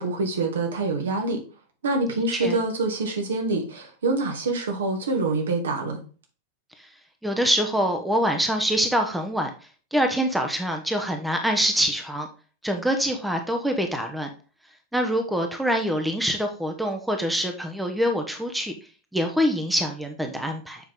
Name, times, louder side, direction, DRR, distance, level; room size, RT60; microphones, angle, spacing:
voice 1, 0.0-1.4 1.8-6.0, right 3 dB, 65° right, 3 dB, 1.9 m, -26 dB
voice 2, 7.2-9.5 9.9-12.3 12.6-14.3 14.9-18.7 19.1-20.8, equal, 5° right, 4 dB, 1.0 m, -25 dB
7.1 x 5.3 x 3.7 m, 0.37 s
figure-of-eight pair, 90°, 0 cm